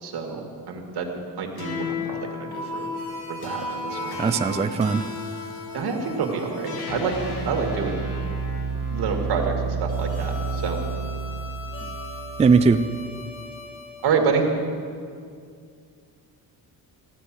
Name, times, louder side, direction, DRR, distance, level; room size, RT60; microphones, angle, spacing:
voice 1, 0.0-1.1 1.4-2.9 3.3-4.6 5.7-7.2 7.4-8.0 8.9-10.8 14.0-14.5, right 5 dB, 85° right, 2 dB, 2.2 m, -28 dB
sound 1, 1.6-14.1, right 2 dB, 70° left, 2.7 m, -31 dB
voice 2, 4.2-5.1 12.4-12.8, right 5 dB, 20° right, 10 dB, 0.3 m, -19 dB
15.0 x 9.7 x 7.5 m, 2.2 s
cardioid pair, 150°, 39 cm